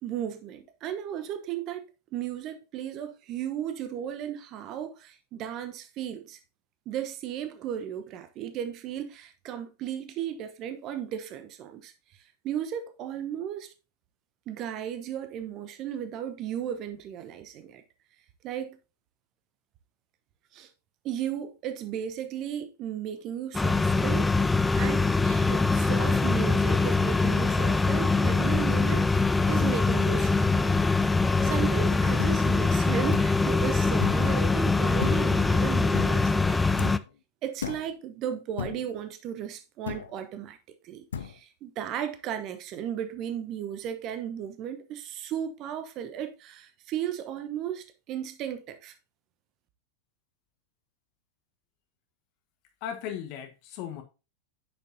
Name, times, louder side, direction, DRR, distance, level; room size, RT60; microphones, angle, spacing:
voice 1, 0.0-1.8 2.1-6.4 6.9-11.9 12.4-13.7 14.5-17.8 18.4-18.8 20.5-20.7 21.0-24.3 24.8-30.7 31.4-36.9 37.4-40.6 40.8-48.9, right 10 dB, 35° right, 1.0 m, -35 dB
sound 1, 23.5-37.0, left 3 dB, 10° left, 0.4 m, -23 dB
sound 2, 32.2-32.4 33.1-33.4 34.0-34.3 35.0-35.4 35.9-36.2 36.8-37.1 37.6-37.9 38.6-38.9 39.9-40.2 41.1-41.4, left 7 dB, 65° left, 0.6 m, -35 dB
voice 2, 52.8-54.0, left 9 dB, 45° left, 1.3 m, -36 dB
8.8 x 6.8 x 2.8 m
figure-of-eight pair, 90°, 0 cm